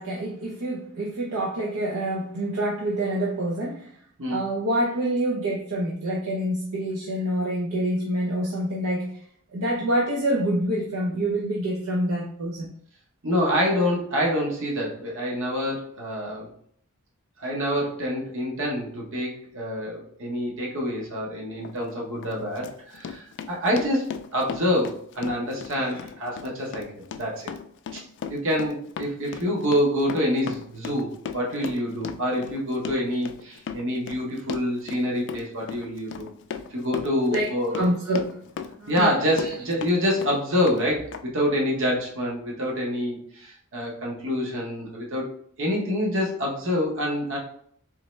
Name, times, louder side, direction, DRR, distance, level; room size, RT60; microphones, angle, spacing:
voice 1, 0.0-3.9 4.3-9.2 9.5-12.7 37.3-38.3 38.8-39.1 39.4-39.5, right 1 dB, 75° right, -3 dB, 0.7 m, -26 dB
voice 2, 13.2-16.5 17.4-27.5 27.9-28.0 28.3-36.3 36.7-37.9 38.9-45.3 45.6-47.4, equal, 60° right, -2 dB, 1.0 m, -26 dB
Run, 21.6-21.8 22.2-39.9 40.2-40.8 41.1-41.2, left 6 dB, 55° left, 0.3 m, -37 dB
3.7 x 3.1 x 3.2 m, 0.62 s
head